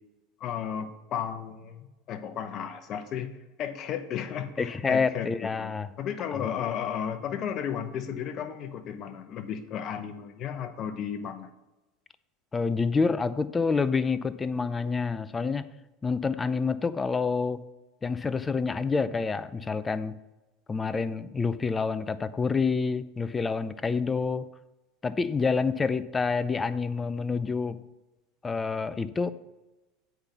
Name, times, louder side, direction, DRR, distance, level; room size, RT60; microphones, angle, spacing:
voice 1, 0.4-3.3 3.6-11.5, left 8 dB, 45° left, 0.9 m, -34 dB
voice 2, 4.6-5.9 12.5-15.7 16.0-17.6 18.0-20.2 20.7-24.5 25.0-27.8 28.4-29.3, left 4 dB, 20° left, 0.5 m, -28 dB
7.9 x 5.2 x 5.8 m
hypercardioid pair, 90°, 0 cm